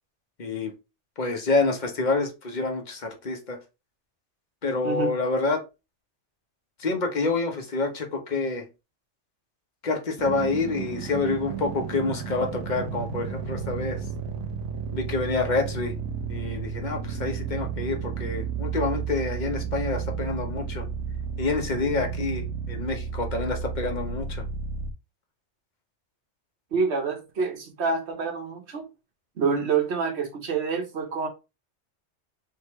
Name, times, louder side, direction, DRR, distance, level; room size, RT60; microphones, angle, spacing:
voice 1, 0.4-0.7 1.2-3.6 4.6-5.6 6.8-8.7 9.8-14.0 14.9-15.9 16.3-20.8 21.4-24.4, left 3 dB, 40° left, 1.1 m, -27 dB
voice 2, 4.8-5.2 26.7-28.9 29.4-31.3, right 5 dB, 65° right, 1.3 m, -27 dB
sound 1, 10.2-24.9, right 6 dB, 90° right, 1.1 m, -32 dB
3.9 x 3.7 x 3.1 m
omnidirectional pair, 1.2 m